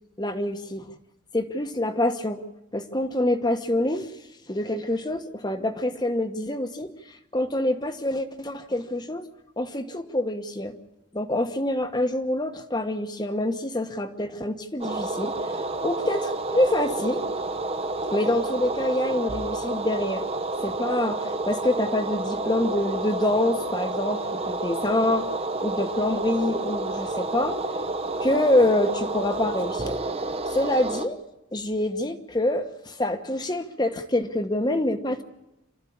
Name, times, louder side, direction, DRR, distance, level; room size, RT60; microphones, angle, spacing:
voice 1, 0.2-0.8 1.3-2.4 2.7-4.1 4.5-9.3 9.6-10.7 11.1-17.2 18.1-20.2 20.6-25.3 25.6-27.6 28.2-30.0 30.5-31.2 31.5-35.2, left 1 dB, 20° left, 8 dB, 1.2 m, -26 dB
sound 1, 14.8-31.0, right 2 dB, 30° right, 1.0 m, -30 dB
27.0 x 13.0 x 8.7 m, 0.90 s
head